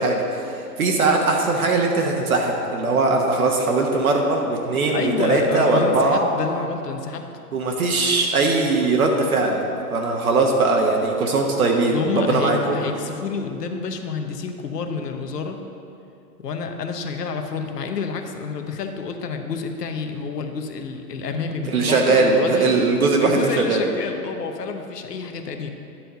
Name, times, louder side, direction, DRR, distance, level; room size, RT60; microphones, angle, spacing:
voice 1, 0.0-6.2 7.5-9.6 9.9-12.7 21.7-23.8, right 3 dB, 65° right, 1 dB, 1.1 m, -20 dB
voice 2, 4.9-7.2 11.9-15.6 16.4-22.7 23.2-25.7, left 5 dB, 80° left, 5 dB, 1.1 m, -28 dB
10.0 x 4.6 x 6.6 m, 2.6 s
hypercardioid pair, 175°, 47 cm